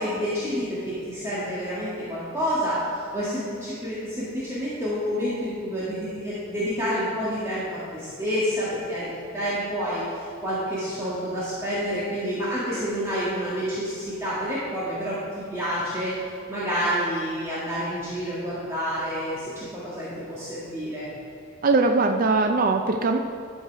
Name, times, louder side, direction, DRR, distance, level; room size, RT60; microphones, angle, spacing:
voice 1, 0.0-15.2 15.5-16.1 16.5-21.1, equal, 15° right, -10 dB, 1.8 m, -28 dB
voice 2, 21.6-23.2, right 3 dB, 45° right, 5 dB, 0.4 m, -21 dB
12.0 x 6.4 x 4.6 m, 2.4 s
head